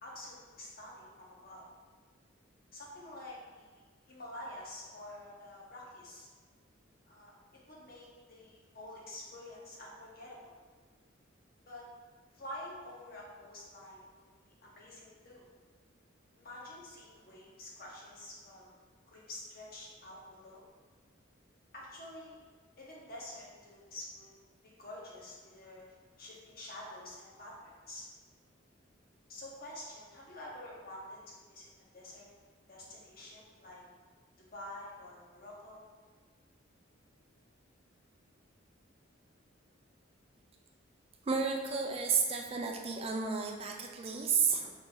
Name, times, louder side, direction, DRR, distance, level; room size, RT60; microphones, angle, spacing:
voice 1, 0.0-1.6 2.7-3.8 4.1-6.3 7.1-7.3 7.7-10.5 11.7-11.8 12.3-14.2 14.6-15.4 16.4-18.7 19.1-20.6 21.7-22.4 22.8-24.3 24.8-25.8 26.2-28.1 29.3-31.6 31.9-32.2 32.7-33.8 34.4-35.9, left 1 dB, 45° left, -4 dB, 1.0 m, -48 dB
voice 2, 41.2-44.7, right 5 dB, 30° right, 2 dB, 0.4 m, -32 dB
4.8 x 2.7 x 3.8 m, 1.4 s
head